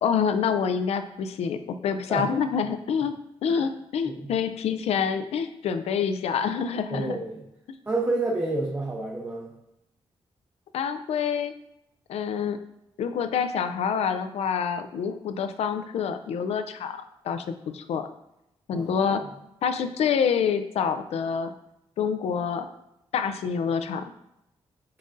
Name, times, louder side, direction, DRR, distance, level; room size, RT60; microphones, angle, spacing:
voice 1, 0.0-7.2 10.7-11.6 12.1-12.6 13.0-18.1 18.7-19.2 19.6-21.5 22.0-22.7 23.1-24.1, left 7 dB, 85° left, 9 dB, 0.4 m, -27 dB
voice 2, 6.9-7.4 7.9-9.5 18.7-19.1, right 2 dB, 20° right, -3 dB, 0.5 m, -29 dB
5.6 x 3.8 x 2.5 m, 0.85 s
wide cardioid pair, 145°, 11 cm